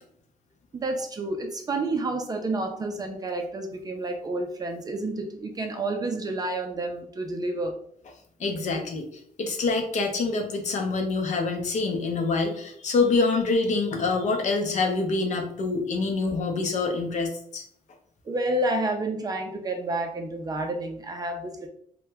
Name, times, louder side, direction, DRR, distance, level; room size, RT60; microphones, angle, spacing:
voice 1, 0.7-7.8 18.3-21.7, right 2 dB, 25° right, 4 dB, 0.4 m, -29 dB
voice 2, 8.4-9.1 9.4-17.6, left 3 dB, 55° left, 3 dB, 0.6 m, -26 dB
2.8 x 2.1 x 3.3 m, 0.63 s
wide cardioid pair, 160°, 15 cm